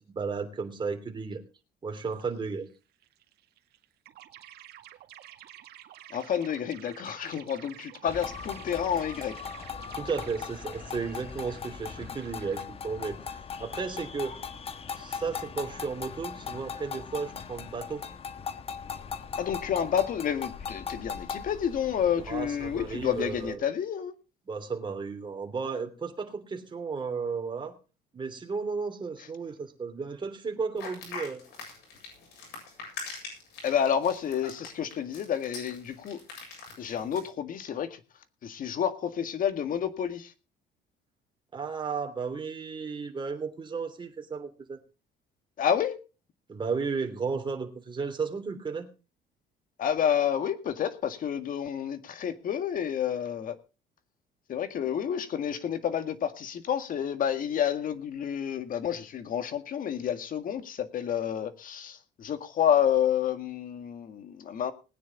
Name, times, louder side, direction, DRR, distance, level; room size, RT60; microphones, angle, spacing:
voice 1, 0.0-1.4 1.8-2.7 9.9-14.4 14.9-18.0 22.3-23.6 24.5-27.7 28.1-31.4 41.5-44.8 46.5-48.9, right 5 dB, 30° right, 5 dB, 3.2 m, -34 dB
sound 1, 2.0-2.7 3.0-12.7, right 13 dB, 70° right, 1.8 m, -50 dB
voice 2, 6.1-9.4 19.4-24.1 33.6-36.2 36.8-38.0 38.4-40.3 45.6-46.0 49.8-53.6 54.5-64.7, left 9 dB, 55° left, 10 dB, 1.9 m, -29 dB
sound 2, 8.1-23.6, left 6 dB, 35° left, 1.3 m, -39 dB
sound 3, 30.8-37.3, left 4 dB, 80° left, 7.9 m, -42 dB
20.0 x 9.6 x 4.0 m, 0.32 s
cardioid pair, 110°, 17 cm